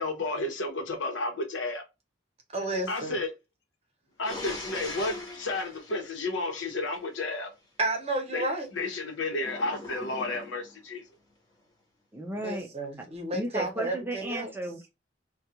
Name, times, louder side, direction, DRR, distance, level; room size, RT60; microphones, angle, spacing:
voice 1, 0.0-1.8 2.9-3.3 4.2-7.5 8.3-11.0, left 2 dB, 80° left, 0.9 m, -32 dB
voice 2, 2.5-3.1 7.8-8.7 12.4-14.5, right 2 dB, 35° right, 0.9 m, -31 dB
sound 1, 4.2-7.0 9.4-10.8, left 2 dB, 20° left, 1.0 m, -41 dB
voice 3, 12.1-12.7 13.3-14.9, right 1 dB, 10° right, 0.4 m, -34 dB
2.4 x 2.3 x 2.7 m
head